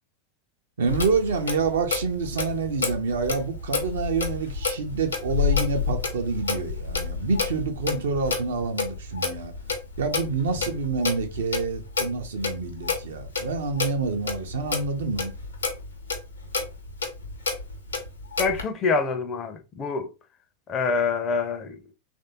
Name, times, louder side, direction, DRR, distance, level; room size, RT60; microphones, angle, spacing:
voice 1, 0.8-9.5 10.0-15.3, right 4 dB, 65° right, 0.6 m, -27 dB
Clock, 0.9-18.6, left 5 dB, 75° left, 0.7 m, -30 dB
voice 2, 18.4-20.1 20.7-21.8, left 4 dB, 30° left, 0.5 m, -26 dB
3.2 x 2.6 x 2.7 m
figure-of-eight pair, 90°, 0 cm